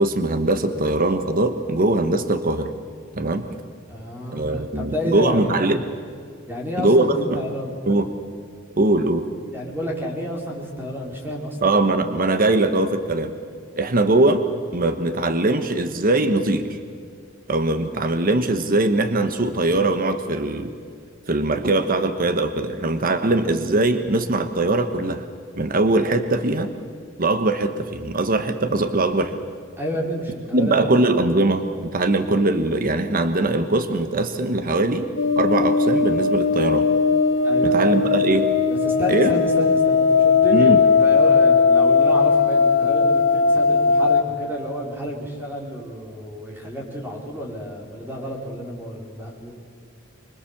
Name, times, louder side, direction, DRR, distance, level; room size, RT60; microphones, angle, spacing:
voice 1, 0.0-2.7 3.1-3.5 4.3-5.8 6.8-7.4 7.9-8.1 8.8-9.2 11.6-13.3 13.8-14.4 14.7-16.8 17.5-20.7 21.3-25.2 25.6-26.7 27.2-29.4 30.5-35.1 35.4-36.9 37.6-38.5 39.1-39.3 40.5-40.8, right 2 dB, 45° right, 9 dB, 1.1 m, -21 dB
voice 2, 3.9-5.7 6.5-7.7 9.5-11.8 29.8-30.9 37.4-38.1 38.7-49.5, equal, 10° right, -1 dB, 4.2 m, -30 dB
sound 1, 35.2-44.2, left 4 dB, 70° left, 1.3 m, -18 dB
25.5 x 22.0 x 7.2 m, 2.3 s
head